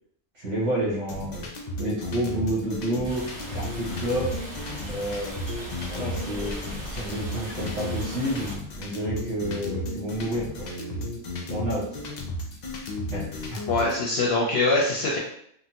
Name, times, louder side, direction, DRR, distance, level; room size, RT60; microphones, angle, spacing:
voice 1, 0.3-1.5 1.8-3.3 3.5-4.3 4.9-5.3 5.9-6.5 6.9-11.1 11.5-11.9 13.1-13.2 13.5-13.6, right 1 dB, 65° right, -6 dB, 1.5 m, -29 dB
sound 1, 1.1-14.0, left 1 dB, 85° left, 0.3 m, -34 dB
sound 2, 3.0-8.6, equal, 20° right, 0.9 m, -37 dB
voice 2, 13.7-15.2, left 2 dB, 60° left, -3 dB, 0.7 m, -23 dB
3.7 x 2.0 x 2.7 m, 0.68 s
omnidirectional pair, 1.4 m